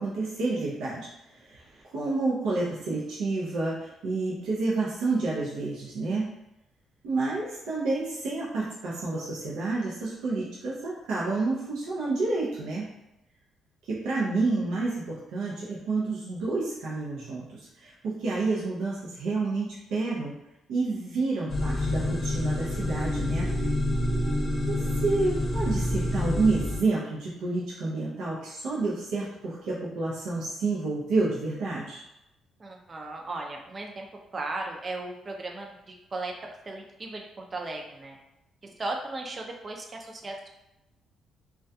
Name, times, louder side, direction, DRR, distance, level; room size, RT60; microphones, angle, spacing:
voice 1, 0.0-6.3 7.0-12.9 13.9-20.4 20.7-23.5 24.7-32.0, right 3 dB, 85° right, -7 dB, 0.5 m, -29 dB
sound 1, 21.5-26.8, left 1 dB, 40° left, 0.7 m, -27 dB
voice 2, 32.6-34.1 34.3-36.3 36.7-38.2 38.6-40.5, right 2 dB, 35° right, 1 dB, 0.5 m, -36 dB
2.2 x 2.2 x 2.6 m, 0.91 s
cardioid pair, 90°, 0 cm